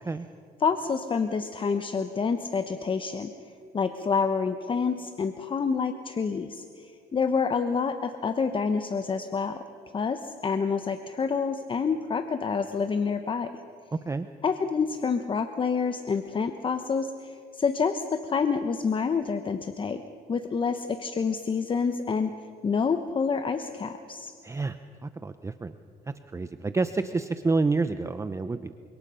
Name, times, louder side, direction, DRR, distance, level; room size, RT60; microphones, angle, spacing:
voice 1, 0.6-3.3 3.7-9.7 9.9-13.5 14.4-20.0 20.3-24.3, left 5 dB, 30° left, 8 dB, 1.1 m, -28 dB
voice 2, 13.9-14.3 24.4-24.8 25.0-25.7 26.1-28.7, right 3 dB, 15° right, 10 dB, 0.7 m, -28 dB
29.0 x 26.0 x 5.7 m, 2.3 s
cardioid pair, 110°, 17 cm